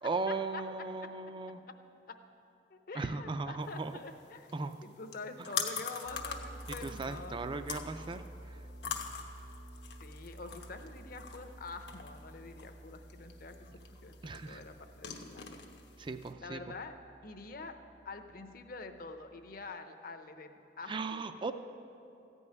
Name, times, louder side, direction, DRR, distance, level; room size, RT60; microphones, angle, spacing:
voice 1, 0.0-1.6 3.0-4.0 4.5-4.8 6.8-8.6 14.2-14.6 16.0-16.6 20.9-21.5, right 3 dB, 30° right, 9 dB, 0.4 m, -37 dB
voice 2, 2.7-4.5 4.8-7.7 10.0-13.5 13.9-15.5 16.4-16.9 17.2-17.8 18.0-21.2, left 3 dB, 55° left, 7 dB, 0.8 m, -46 dB
sound 1, 3.6-16.3, left 6 dB, 80° left, 1.1 m, -44 dB
sound 2, 6.0-19.7, right 1 dB, 75° right, 1.4 m, -52 dB
14.0 x 5.4 x 9.3 m, 2.7 s
head